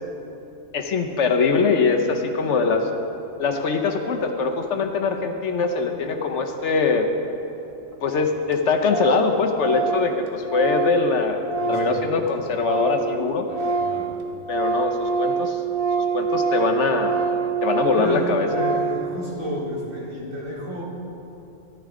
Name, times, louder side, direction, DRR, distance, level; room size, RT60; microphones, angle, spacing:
voice 1, 0.7-2.9 3.4-7.1 8.0-11.4 11.7-13.5 14.5-15.6 16.0-17.2 17.6-18.5, left 4 dB, 65° left, 4 dB, 1.0 m, -22 dB
Organ, 7.9-8.0 8.2-8.3 8.5-8.6 8.9-9.3 9.5-13.1 13.4-19.1, right 5 dB, 30° right, 0.9 m, -25 dB
voice 2, 11.6-12.1 13.5-14.1 17.9-20.8, equal, 75° right, -5 dB, 2.7 m, -32 dB
14.0 x 11.5 x 3.7 m, 2.9 s
omnidirectional pair, 1.4 m